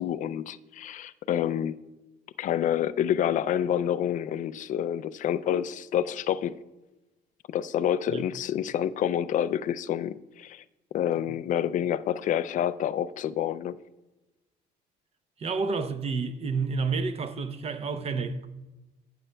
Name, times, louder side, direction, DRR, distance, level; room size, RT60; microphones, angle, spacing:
voice 1, 0.0-1.8 2.4-6.6 7.5-10.6 10.9-13.8, left 10 dB, 50° left, 0.4 m, -28 dB
voice 2, 15.4-18.5, right 4 dB, 35° right, 0.6 m, -30 dB
12.0 x 8.7 x 2.2 m
cardioid pair, 110°, 17 cm